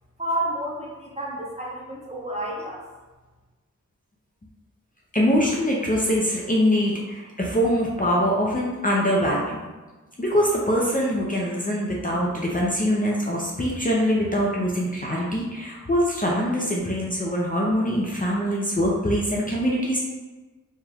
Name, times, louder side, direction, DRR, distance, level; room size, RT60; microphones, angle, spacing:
voice 1, 0.2-2.8, right 1 dB, 20° right, -4 dB, 1.1 m, -30 dB
voice 2, 5.1-9.7 10.2-20.0, equal, 25° left, -4 dB, 0.7 m, -23 dB
4.5 x 3.4 x 2.4 m, 1.2 s
wide cardioid pair, 60°, 32 cm